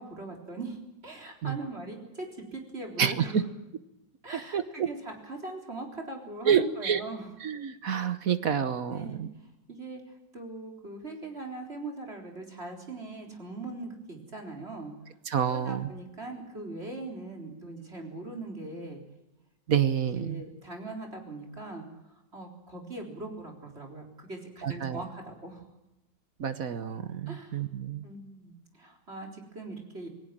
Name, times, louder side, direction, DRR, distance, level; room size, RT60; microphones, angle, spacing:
voice 1, 0.0-3.4 4.2-7.3 8.9-14.9 15.5-19.0 20.2-25.7 27.3-27.6 28.0-30.1, right 2 dB, 35° right, 2 dB, 4.1 m, -41 dB
voice 2, 3.0-3.4 4.5-4.9 6.4-7.0 7.4-9.3 15.3-15.8 19.7-20.4 24.6-25.0 26.4-28.1, right 8 dB, 55° right, 12 dB, 1.3 m, -28 dB
27.5 x 19.0 x 7.5 m, 0.93 s
omnidirectional pair, 2.0 m